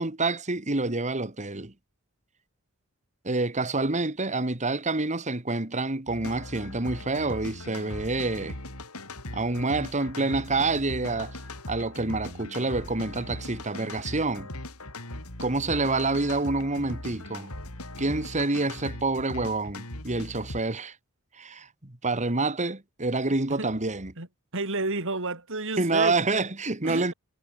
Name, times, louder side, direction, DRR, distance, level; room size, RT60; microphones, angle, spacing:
voice 1, 0.0-1.7 3.2-8.6 9.3-11.4 11.7-14.5 15.4-17.5 18.0-21.0 21.3-24.2 25.8-27.1, right 3 dB, 35° right, 2.1 m, -27 dB
sound 1, 6.1-20.6, left 1 dB, 75° left, 6.5 m, -39 dB
voice 2, 24.5-26.2 26.8-27.1, right 2 dB, 60° right, 4.6 m, -30 dB
head